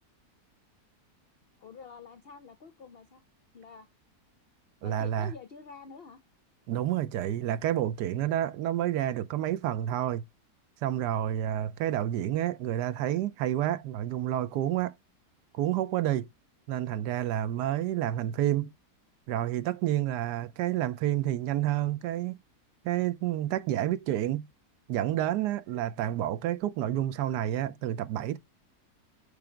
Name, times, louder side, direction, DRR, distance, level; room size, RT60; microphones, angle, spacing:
voice 1, 1.6-3.2 3.5-3.9 4.8-6.2, left 6 dB, 70° left, 0.5 m, -47 dB
voice 2, 4.8-5.3 6.7-10.2 10.8-14.9 15.5-16.3 16.7-18.7 19.3-22.4 22.8-24.5 24.9-28.4, right 12 dB, 85° right, 1.2 m, -29 dB
6.7 x 3.3 x 5.0 m
omnidirectional pair, 1.8 m